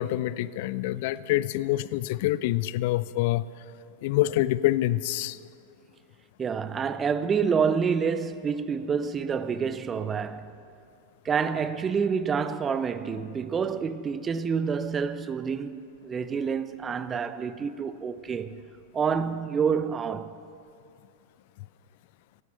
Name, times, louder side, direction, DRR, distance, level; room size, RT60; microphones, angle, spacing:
voice 1, 0.0-3.4 4.0-5.4, left 15 dB, 50° left, 0.3 m, -26 dB
voice 2, 6.4-10.5 11.2-18.6 18.9-20.3, right 6 dB, 20° right, 0.5 m, -28 dB
16.0 x 10.5 x 4.4 m
figure-of-eight pair, 90°, 0 cm